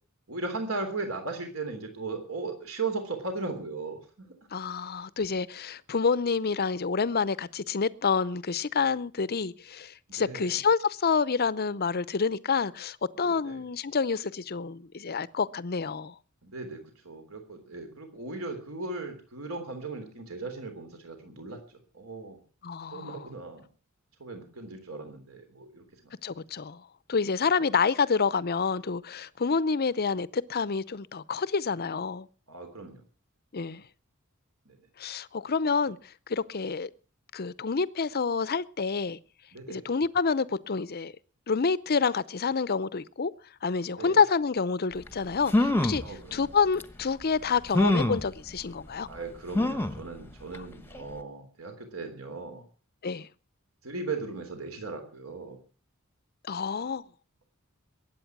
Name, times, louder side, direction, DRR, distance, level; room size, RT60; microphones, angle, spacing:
voice 1, 0.3-4.4 10.1-10.6 13.2-13.6 16.4-22.4 22.9-23.7 24.2-26.1 32.5-33.0 34.7-34.8 39.5-39.9 43.9-44.2 46.0-46.5 49.1-52.6 53.8-55.6, right 3 dB, 65° right, 3.4 m, -37 dB
voice 2, 4.5-16.1 22.6-23.2 26.2-26.8 27.1-32.3 33.5-33.8 35.0-36.0 36.3-36.9 37.3-39.2 39.7-41.1 41.5-43.3 43.6-46.0 46.3-49.1 53.0-53.3 56.4-57.0, left 5 dB, 45° left, 0.6 m, -28 dB
sound 1, 45.1-45.2 45.5-46.1 46.8-46.9 47.7-48.3 49.5-50.0 50.5-50.6 50.9-51.0, left 1 dB, 10° left, 1.0 m, -24 dB
21.5 x 8.8 x 6.0 m
head